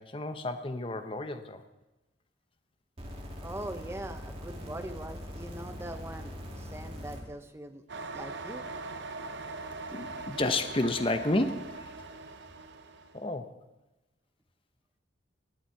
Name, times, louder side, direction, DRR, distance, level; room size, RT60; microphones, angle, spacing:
voice 1, 0.0-1.6 9.7-11.9 13.1-13.5, left 2 dB, 25° left, 9 dB, 0.7 m, -31 dB
sound 1, 3.0-7.2 8.1-8.2, equal, 30° right, 2.0 m, -42 dB
voice 2, 3.4-7.8 8.1-8.6, right 1 dB, 15° right, 8 dB, 0.7 m, -42 dB
sound 2, 7.9-13.2, right 3 dB, 65° right, 0.7 m, -41 dB
18.0 x 9.1 x 4.6 m, 1.1 s
head